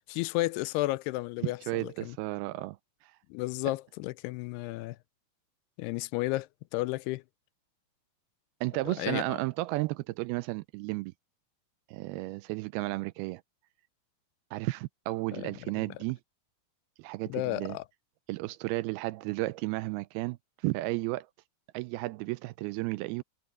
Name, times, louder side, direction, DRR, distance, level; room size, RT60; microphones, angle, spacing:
voice 1, 0.1-2.2 3.3-5.0 5.8-7.2 8.9-9.4 15.3-15.5 15.8-15.9 17.3-17.8, left 19 dB, 85° left, 2.6 m, -33 dB
voice 2, 1.4-2.8 8.6-11.1 11.9-13.4 14.5-16.2 17.0-17.8 18.3-20.4 20.6-21.3 21.7-23.2, right 20 dB, 80° right, 2.3 m, -33 dB
omnidirectional pair, 4.7 m